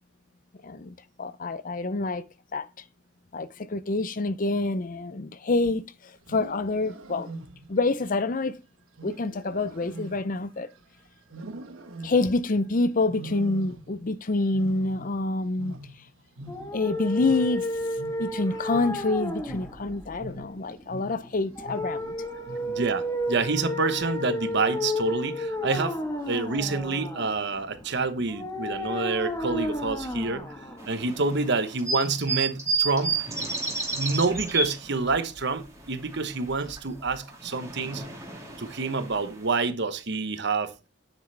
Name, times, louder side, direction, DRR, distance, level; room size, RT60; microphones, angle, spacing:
voice 1, 0.6-2.3 2.5-2.7 3.3-5.9 6.3-7.3 7.7-8.6 9.0-10.7 12.0-15.8 16.7-17.7 18.2-22.1, left 3 dB, 40° left, 0.6 m, -27 dB
Wild animals, 6.2-7.9 9.0-10.8 11.3-12.5 13.1-14.1 14.4-16.9 17.2-22.1 22.4-22.9 23.3-23.8 24.5-24.9, right 2 dB, 75° right, 1.3 m, -43 dB
sound 1, 16.4-31.4, left 1 dB, 15° left, 1.4 m, -33 dB
voice 2, 22.7-26.0 26.3-30.5 30.9-33.1 33.9-38.0 38.6-40.7, right 3 dB, 55° right, 1.1 m, -27 dB
sound 2, 30.8-35.4 35.7-36.8 37.1-39.6, right 4 dB, 15° right, 2.3 m, -31 dB
9.5 x 7.6 x 3.4 m
head